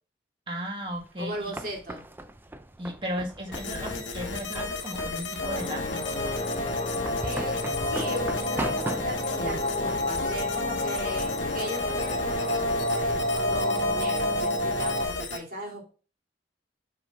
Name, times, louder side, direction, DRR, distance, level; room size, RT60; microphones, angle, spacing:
voice 1, 0.5-1.5 2.8-6.4, equal, 25° right, 0 dB, 2.1 m, -35 dB
sound 1, 0.9-11.4, right 1 dB, 10° right, 0.4 m, -39 dB
voice 2, 1.2-2.0 7.2-15.9, equal, 50° right, -1 dB, 2.6 m, -37 dB
sound 2, 3.5-15.4, left 3 dB, 85° left, 1.2 m, -35 dB
sound 3, 5.4-15.1, left 1 dB, 35° left, 0.9 m, -29 dB
5.8 x 5.6 x 3.7 m, 0.35 s
head